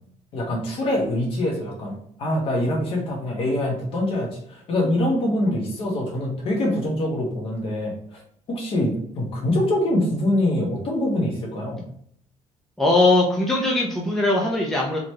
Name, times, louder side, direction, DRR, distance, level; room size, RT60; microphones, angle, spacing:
voice 1, 0.3-8.2 8.5-11.9, left 1 dB, 50° left, -1 dB, 1.3 m, -24 dB
voice 2, 12.8-15.0, left 2 dB, ahead, -3 dB, 0.6 m, -20 dB
4.0 x 3.2 x 3.1 m, 0.65 s
cardioid pair, 160°, 13 cm